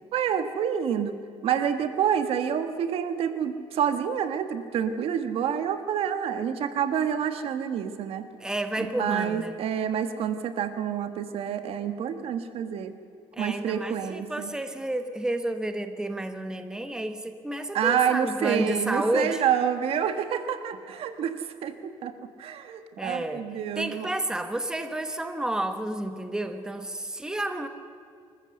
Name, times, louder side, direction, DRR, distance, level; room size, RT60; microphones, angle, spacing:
voice 1, 0.1-1.1 1.4-8.2 8.8-12.9 13.4-14.5 17.7-22.1 22.4-24.1, right 8 dB, 65° right, 9 dB, 1.5 m, -28 dB
voice 2, 8.4-9.6 13.3-19.4 23.0-23.4 23.8-27.7, right 1 dB, 5° right, 7 dB, 1.3 m, -30 dB
25.0 x 14.0 x 7.9 m, 2.4 s
cardioid pair, 125°, 11 cm